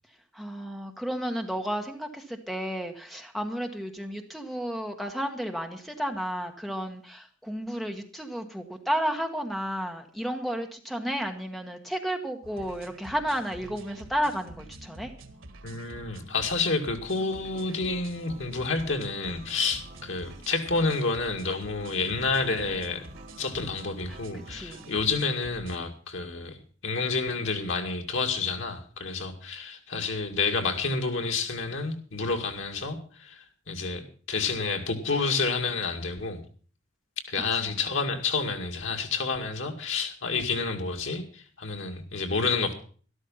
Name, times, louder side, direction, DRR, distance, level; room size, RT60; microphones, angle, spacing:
voice 1, 0.3-15.1 24.1-24.8 37.5-37.7, equal, ahead, 4 dB, 1.3 m, -32 dB
sound 1, 12.4-25.8, right 2 dB, 85° right, 1.7 m, -47 dB
voice 2, 15.6-23.0 23.4-26.6 26.8-36.4 37.3-42.7, left 4 dB, 80° left, 4 dB, 2.3 m, -29 dB
sound 2, 17.3-25.1, right 1 dB, 35° right, 3.1 m, -51 dB
13.0 x 12.5 x 5.5 m, 0.42 s
head